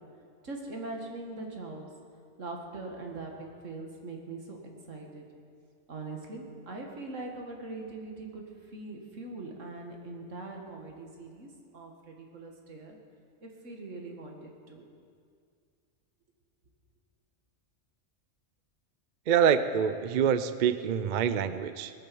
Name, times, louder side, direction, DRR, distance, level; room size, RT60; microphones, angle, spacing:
voice 1, 0.4-1.9 2.4-4.6 4.9-5.2 5.9-13.0 13.4-14.9, right 2 dB, 85° right, 1 dB, 2.2 m, -42 dB
voice 2, 19.3-21.9, right 8 dB, 50° right, 12 dB, 0.6 m, -26 dB
19.5 x 8.8 x 7.0 m, 2.2 s
omnidirectional pair, 1.3 m